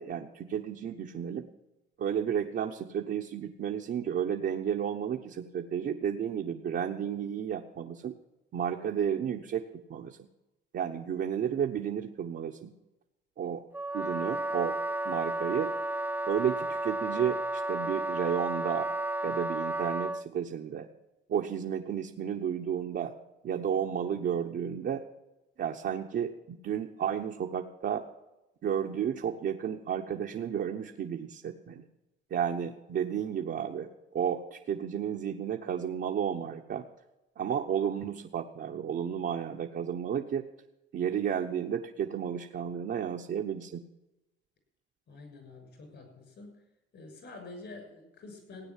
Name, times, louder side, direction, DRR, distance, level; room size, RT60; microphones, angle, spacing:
voice 1, 0.0-1.5 2.0-8.1 8.5-10.3 10.7-12.7 13.4-13.6 13.9-14.8 15.0-15.7 16.3-18.9 19.2-20.9 21.3-23.1 23.4-25.0 25.6-28.0 28.6-31.8 32.3-33.9 34.1-36.8 37.4-40.4 40.9-43.8, right 8 dB, 60° right, 1 dB, 1.0 m, -32 dB
Wind instrument woodwind instrument, 13.7-20.2, right 1 dB, 10° right, 0.4 m, -32 dB
voice 2, 45.1-46.6 46.9-48.7, left 3 dB, 65° left, 5 dB, 6.7 m, -47 dB
17.0 x 9.3 x 7.4 m, 0.97 s
cardioid pair, 90°, 20 cm